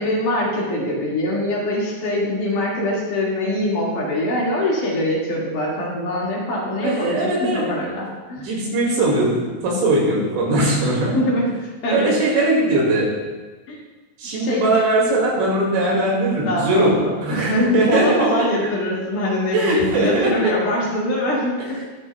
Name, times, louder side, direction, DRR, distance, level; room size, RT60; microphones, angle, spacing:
voice 1, 0.0-8.6 11.1-11.5 11.8-12.1 13.7-13.8 14.4-14.6 16.5-21.8, left 1 dB, 50° left, -5 dB, 3.0 m, -23 dB
voice 2, 6.8-7.7 8.4-11.2 11.9-13.1 14.2-16.9 17.2-18.4 19.5-20.5, right 2 dB, 65° right, -3 dB, 4.2 m, -20 dB
22.5 x 7.7 x 2.3 m, 1.3 s
omnidirectional pair, 5.9 m